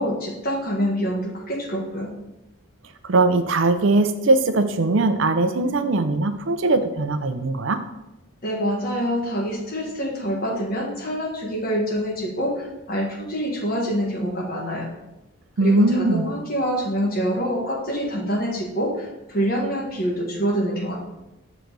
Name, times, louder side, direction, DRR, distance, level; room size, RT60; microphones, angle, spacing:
voice 1, 0.0-2.1 8.4-14.8 15.6-20.9, equal, 45° left, -2 dB, 1.5 m, -26 dB
voice 2, 3.0-7.8 15.6-16.3, right 2 dB, 65° right, 9 dB, 0.5 m, -20 dB
6.5 x 4.0 x 4.6 m, 0.94 s
head